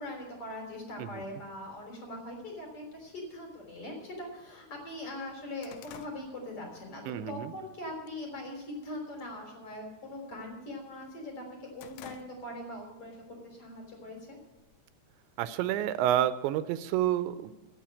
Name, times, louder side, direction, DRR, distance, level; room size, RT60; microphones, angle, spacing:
voice 1, 0.0-14.4, left 1 dB, 35° left, 1 dB, 3.9 m, -41 dB
sound 1, 3.8-3.9 4.3-4.4 4.8-7.2 7.6-7.9 8.3-8.8 9.1-9.4 9.7-10.9 11.3-12.8 13.1-13.3 14.2-15.0, left 11 dB, 90° left, 3.1 m, -52 dB
voice 2, 7.1-7.5 15.4-17.5, right 12 dB, 80° right, 13 dB, 2.8 m, -29 dB
16.0 x 6.9 x 8.5 m, 1.1 s
omnidirectional pair, 5.4 m